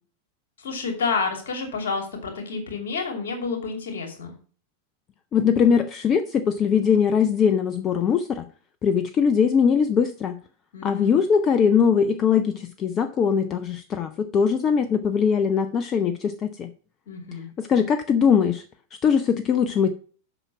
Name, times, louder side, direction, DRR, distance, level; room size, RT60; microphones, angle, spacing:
voice 1, 0.6-4.3 10.7-11.2 17.1-17.5, left 4 dB, 60° left, 4 dB, 2.7 m, -29 dB
voice 2, 5.3-8.5 8.8-10.4 10.8-16.7 17.6-18.6 18.9-19.9, left 7 dB, 30° left, 10 dB, 0.6 m, -21 dB
8.1 x 5.8 x 5.9 m, 0.41 s
figure-of-eight pair, 90°, 0 cm